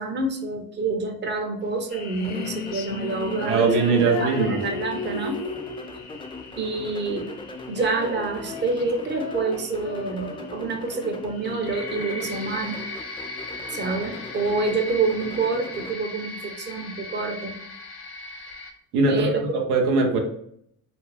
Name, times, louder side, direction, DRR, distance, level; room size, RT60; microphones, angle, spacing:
voice 1, 0.0-5.4 6.6-7.3 7.7-12.8 13.7-17.5 19.1-19.4, right 3 dB, 25° right, 3 dB, 0.6 m, -27 dB
Female singing, 1.6-12.6, left 3 dB, 50° left, 0.6 m, -36 dB
sound 1, 1.9-18.7, left 2 dB, 90° left, 0.6 m, -40 dB
sound 2, 2.2-16.0, left 2 dB, 15° left, 0.3 m, -40 dB
voice 2, 3.5-4.6 18.9-20.2, right 3 dB, 85° right, 2 dB, 0.6 m, -21 dB
2.4 x 2.3 x 3.1 m, 0.69 s
hypercardioid pair, 50°, 43 cm